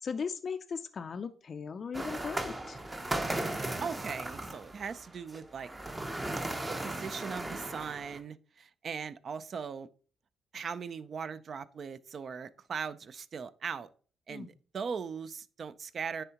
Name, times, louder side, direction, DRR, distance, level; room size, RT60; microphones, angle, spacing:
voice 1, 0.0-2.8 14.3-14.5, left 6 dB, 45° left, 0.4 m, -38 dB
sound 1, 1.9-8.2, right 1 dB, 20° right, 0.7 m, -37 dB
voice 2, 3.8-5.7 6.8-9.9 10.5-13.9 14.3-16.2, right 6 dB, 50° right, 0.4 m, -39 dB
9.9 x 3.4 x 2.8 m
cardioid pair, 90°, 0 cm